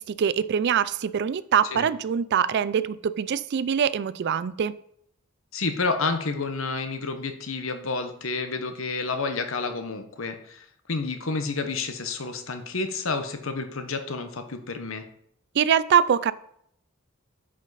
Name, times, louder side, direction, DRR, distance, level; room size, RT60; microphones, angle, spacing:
voice 1, 0.0-4.7 15.6-16.3, right 8 dB, 55° right, 17 dB, 0.4 m, -23 dB
voice 2, 5.5-15.0, left 4 dB, 70° left, 8 dB, 1.0 m, -30 dB
9.5 x 5.0 x 4.1 m, 0.69 s
head